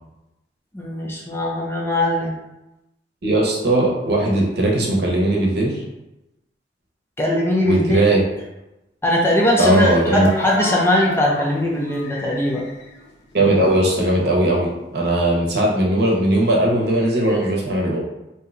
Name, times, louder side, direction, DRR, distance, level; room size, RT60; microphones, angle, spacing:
voice 1, 0.7-2.3 7.2-8.0 9.0-12.6, left 1 dB, 15° left, -3 dB, 0.5 m, -20 dB
voice 2, 3.2-5.8 7.6-8.2 9.6-10.3 13.3-18.0, right 1 dB, 65° right, -2 dB, 0.8 m, -18 dB
sound 1, 9.2-13.9 14.3-15.4, left 2 dB, 80° left, 0.6 m, -33 dB
2.7 x 2.2 x 3.7 m, 0.95 s
head